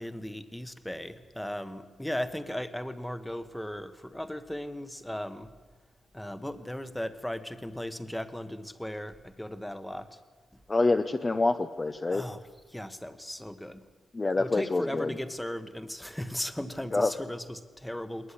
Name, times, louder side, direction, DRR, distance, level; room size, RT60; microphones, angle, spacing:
voice 1, 0.0-5.5 6.1-10.2 10.5-10.6 12.1-12.4 12.7-13.8 14.4-18.3, left 1 dB, 5° left, 10 dB, 1.3 m, -37 dB
voice 2, 10.7-12.2 14.1-15.1 16.9-17.1, left 3 dB, 20° left, 8 dB, 0.8 m, -26 dB
20.5 x 20.0 x 10.0 m, 1.4 s
wide cardioid pair, 145°, 0 cm